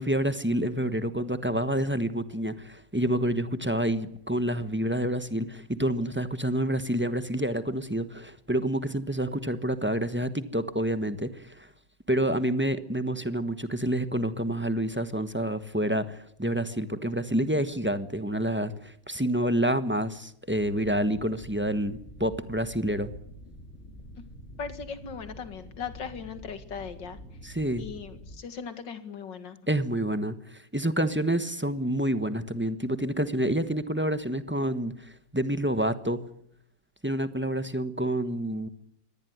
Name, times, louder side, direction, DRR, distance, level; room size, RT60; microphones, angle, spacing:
voice 1, 0.0-11.5 12.1-23.1 27.4-27.8 29.7-34.9 35.3-36.2 37.0-38.7, right 1 dB, 5° right, 11 dB, 1.0 m, -28 dB
sound 1, 20.5-28.4, left 1 dB, 40° left, 2.9 m, -47 dB
voice 2, 24.6-27.2 27.8-29.6, left 6 dB, 75° left, 10 dB, 2.6 m, -38 dB
24.5 x 18.5 x 9.5 m, 0.70 s
omnidirectional pair, 2.0 m